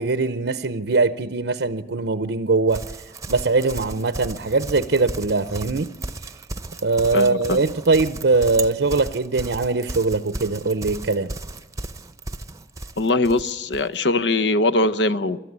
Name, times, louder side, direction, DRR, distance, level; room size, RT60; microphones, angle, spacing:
voice 1, 0.0-2.8 3.3-5.9 6.8-11.3, right 3 dB, 75° right, 0.7 m, -21 dB
Livestock farm animals working animals, 2.7-13.9, right 2 dB, 20° right, 0.8 m, -35 dB
voice 2, 7.1-7.6 13.0-15.4, left 2 dB, 70° left, 0.9 m, -21 dB
25.0 x 13.5 x 9.6 m
head